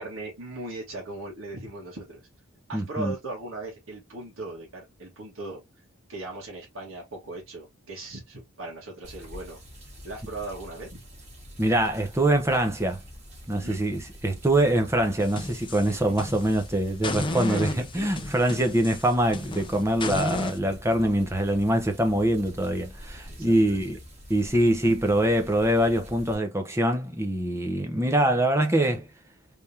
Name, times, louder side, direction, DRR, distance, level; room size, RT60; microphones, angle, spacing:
voice 1, 0.0-2.2 2.7-5.6 6.1-9.6 10.0-11.0 13.6-13.8 15.9-16.1 17.3-18.1 23.3-23.8, right 2 dB, 80° right, 1.7 m, -38 dB
voice 2, 2.7-3.1 11.6-13.0 13.5-24.0 24.3-29.1, right 1 dB, 15° right, 0.8 m, -24 dB
sound 1, 9.0-26.3, equal, 35° right, 1.7 m, -46 dB
sound 2, 15.2-16.6 17.0-20.6, left 2 dB, 25° left, 0.5 m, -33 dB
3.4 x 3.4 x 2.7 m
head